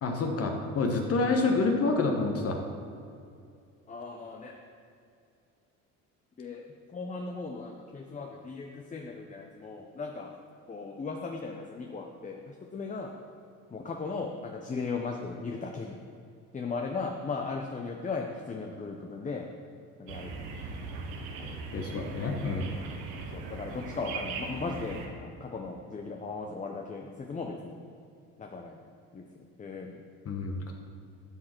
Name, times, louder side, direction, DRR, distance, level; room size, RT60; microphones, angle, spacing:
voice 1, 0.0-2.6 21.7-22.7 30.2-30.7, left 3 dB, 45° left, 3 dB, 1.3 m, -28 dB
voice 2, 3.9-4.6 6.4-6.6 6.9-10.3 10.7-13.1 13.7-16.0 16.5-19.5 20.0-20.5 21.4-21.6 23.2-27.8 28.4-30.0, left 4 dB, 20° left, 2 dB, 0.8 m, -37 dB
sound 1, 20.1-25.1, right 4 dB, 85° right, 1.3 m, -39 dB
12.0 x 6.4 x 4.5 m, 2.5 s
cardioid pair, 100°, 33 cm